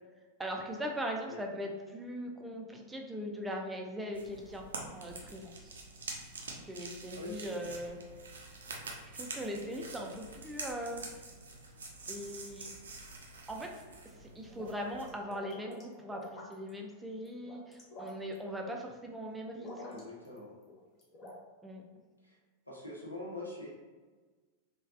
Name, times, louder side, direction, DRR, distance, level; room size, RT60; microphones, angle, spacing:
voice 1, 0.4-4.7 4.9-5.7 6.6-8.0 9.1-11.1 12.1-12.7 13.5-13.8 14.2-20.0 21.6-21.8, equal, 10° right, 1 dB, 0.4 m, -40 dB
sound 1, 4.1-15.1, right 3 dB, 70° right, 0.4 m, -46 dB
voice 2, 7.1-7.6 19.9-20.5 22.2-22.4 22.7-23.7, left 2 dB, 85° left, -4 dB, 0.7 m, -44 dB
sound 2, 14.5-16.7 17.3-18.4 19.6-20.4 20.6-21.4, left 1 dB, 30° left, 0.7 m, -48 dB
3.2 x 2.2 x 2.3 m, 1.4 s
figure-of-eight pair, 90°, 0 cm